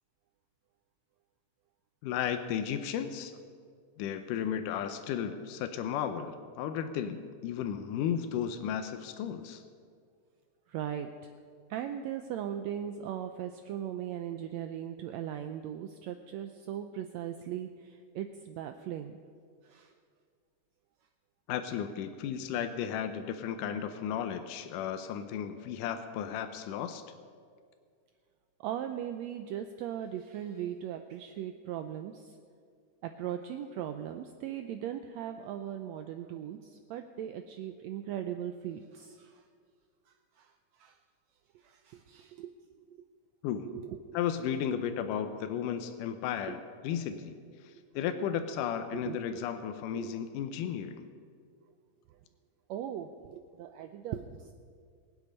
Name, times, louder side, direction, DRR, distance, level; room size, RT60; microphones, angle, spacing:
voice 1, 2.0-3.4 4.0-9.6 21.5-27.0 43.4-43.7 44.1-47.3 47.6-51.1, left 9 dB, 85° left, 8 dB, 2.3 m, -34 dB
voice 2, 10.7-11.3 11.7-19.1 19.6-19.9 28.6-32.4 33.0-39.4 40.4-40.5 40.8-41.0 41.6-42.5 42.9-43.0 43.6-44.2 46.5-46.6 47.1-47.2 48.9-49.4 49.9-50.1 52.7-54.5, right 10 dB, 90° right, 7 dB, 1.5 m, -39 dB
23.0 x 8.3 x 5.3 m, 2.1 s
omnidirectional pair, 3.7 m